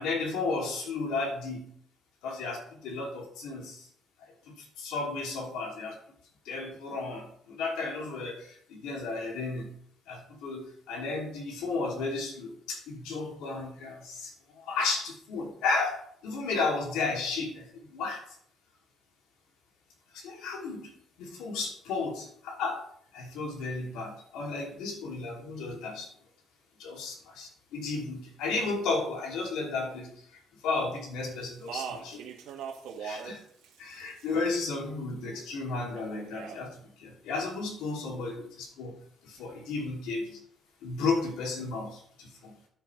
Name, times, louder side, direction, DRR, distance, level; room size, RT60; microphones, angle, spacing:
voice 1, 0.0-1.7 2.2-3.9 4.2-6.0 6.4-9.7 10.1-18.2 20.1-22.9 23.1-26.1 26.8-32.2 33.0-33.4 33.8-39.0 39.2-40.4 40.8-42.5, left 3 dB, 85° left, 0 dB, 2.8 m, -33 dB
Speech, 31.4-33.4 33.6-34.5 36.0-36.6, right 7 dB, 85° right, 1.8 m, -40 dB
10.5 x 8.6 x 3.3 m, 0.63 s
cardioid pair, 150°, 0 cm